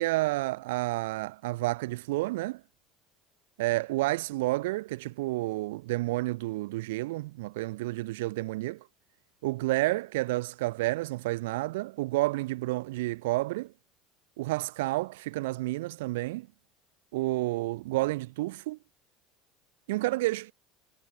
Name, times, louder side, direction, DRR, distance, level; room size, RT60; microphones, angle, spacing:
voice 1, 0.0-2.6 3.6-8.8 9.4-13.7 14.4-16.5 17.1-18.8 19.9-20.5, right 19 dB, 80° right, 2.1 m, -30 dB
hypercardioid pair, 85°, 0 cm